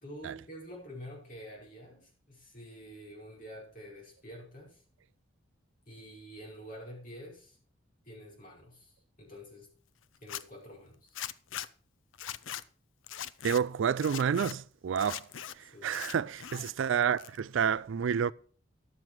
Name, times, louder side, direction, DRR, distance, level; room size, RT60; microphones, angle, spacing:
voice 1, 0.0-4.8 5.9-7.6 8.0-9.7 10.2-11.2 15.6-16.0, equal, 40° left, 5.0 m, -48 dB
Zipper (clothing), 10.1-10.4 11.1-11.7 12.1-12.6 13.1-13.6 14.0-14.5 15.0-15.5 15.9-16.7 17.0-17.6, left 10 dB, 75° left, 0.5 m, -40 dB
voice 2, 13.4-15.3 15.5-18.3, right 7 dB, 70° right, 0.4 m, -29 dB
12.0 x 7.6 x 4.6 m
head